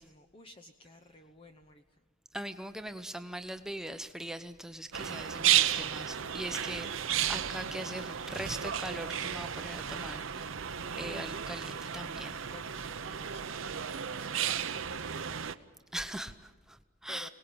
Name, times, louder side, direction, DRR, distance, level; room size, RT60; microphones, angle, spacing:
voice 1, 0.0-1.8 6.2-6.5 6.7-7.5 12.4-15.6 17.1-17.3, left 2 dB, 25° left, 5 dB, 0.9 m, -55 dB
voice 2, 2.3-6.9 7.1-10.5 11.0-12.4 15.9-17.3, right 1 dB, ahead, 8 dB, 0.8 m, -41 dB
sound 1, 4.9-15.5, right 9 dB, 70° right, 0.8 m, -33 dB
25.5 x 19.0 x 8.9 m, 1.3 s
head